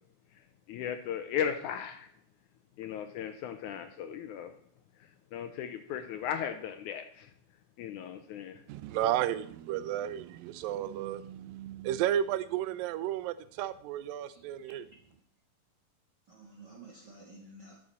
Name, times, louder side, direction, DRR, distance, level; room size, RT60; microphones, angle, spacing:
voice 1, 0.7-2.1 2.8-4.5 5.3-7.3 7.8-8.6, left 8 dB, 80° left, 8 dB, 1.8 m, -36 dB
voice 2, 8.7-14.9, right 11 dB, 85° right, 15 dB, 2.3 m, -33 dB
voice 3, 14.3-15.1 16.3-17.8, right 2 dB, 60° right, -1 dB, 1.1 m, -53 dB
12.0 x 6.3 x 4.2 m, 0.65 s
omnidirectional pair, 4.0 m